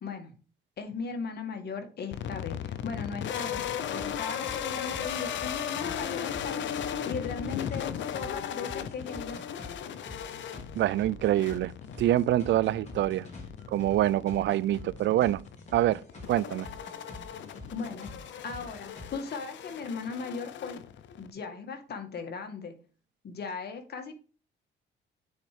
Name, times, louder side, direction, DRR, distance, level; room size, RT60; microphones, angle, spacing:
voice 1, 0.0-0.4 0.8-3.6 3.9-6.7 7.1-9.4 17.7-18.1 18.4-20.8 21.2-22.8 23.2-24.1, left 5 dB, 55° left, 1.9 m, -37 dB
sound 1, 2.1-21.3, left 9 dB, 70° left, 0.7 m, -37 dB
sound 2, 3.4-19.2, left 2 dB, 35° left, 3.6 m, -47 dB
voice 2, 10.7-11.7 12.0-13.3 13.7-15.4 15.7-16.0 16.3-16.7, right 13 dB, 65° right, 0.4 m, -25 dB
8.7 x 4.4 x 5.1 m
cardioid pair, 90°, 20 cm